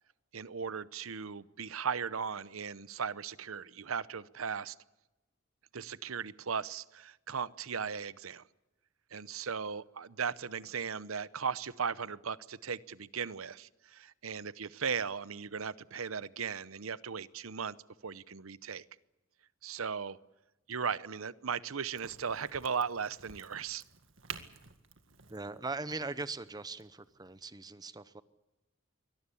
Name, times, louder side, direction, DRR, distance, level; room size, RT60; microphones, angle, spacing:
voice 1, 0.3-4.7 5.7-8.4 9.1-17.8 18.0-18.8 19.6-20.2 20.7-23.8, right 6 dB, 90° right, 17 dB, 0.8 m, -37 dB
Crack, 22.0-27.4, right 7 dB, 65° right, 2.0 m, -51 dB
voice 2, 25.3-28.2, right 3 dB, 20° right, 14 dB, 0.8 m, -40 dB
24.0 x 18.5 x 8.4 m, 1.0 s
head